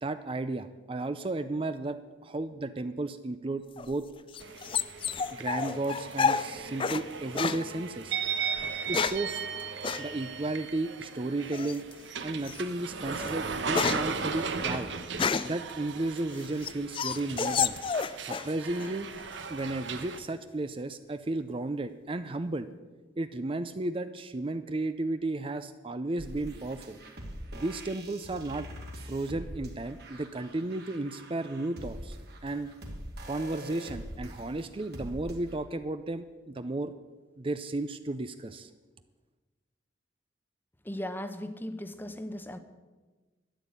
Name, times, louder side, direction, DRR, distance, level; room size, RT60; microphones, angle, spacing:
voice 1, 0.0-4.1 5.4-8.2 8.9-9.4 10.0-11.8 12.2-14.9 15.4-17.8 18.2-19.1 19.5-22.7 23.2-27.0 27.5-28.7 29.0-32.2 32.4-32.7 33.3-36.9 37.4-38.7, right 2 dB, 30° right, 10 dB, 0.5 m, -33 dB
sound 1, 3.8-7.1 7.4-7.6 8.6-9.3 9.8-10.1 11.5-11.9 12.5-12.6 13.0-15.6 16.2-18.5 18.8-19.4, left 6 dB, 30° left, 0.4 m, -30 dB
sound 2, 4.4-20.2, right 5 dB, 80° right, 1.0 m, -37 dB
sound 3, 26.2-35.6, equal, 55° right, 2.4 m, -43 dB
voice 2, 40.8-42.6, left 1 dB, 10° left, 10 dB, 0.8 m, -37 dB
12.5 x 10.0 x 8.4 m, 1.3 s
head